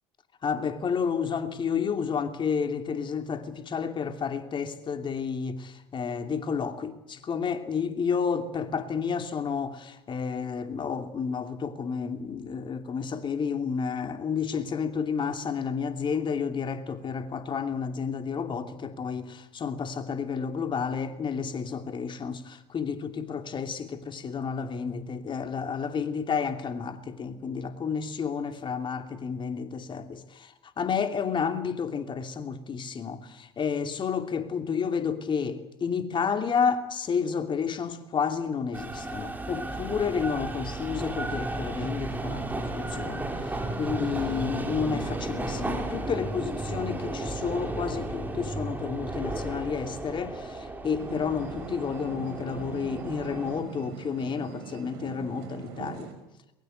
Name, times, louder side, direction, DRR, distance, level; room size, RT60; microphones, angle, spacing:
voice 1, 0.4-56.1, left 6 dB, 40° left, 2.8 m, -31 dB
sound 1, 38.7-53.6, right 2 dB, 15° right, 5.3 m, -34 dB
Syncopating Alarms high pitched, 51.0-56.1, right 7 dB, 75° right, 5.3 m, -41 dB
22.5 x 22.5 x 8.1 m
hypercardioid pair, 70°, 13 cm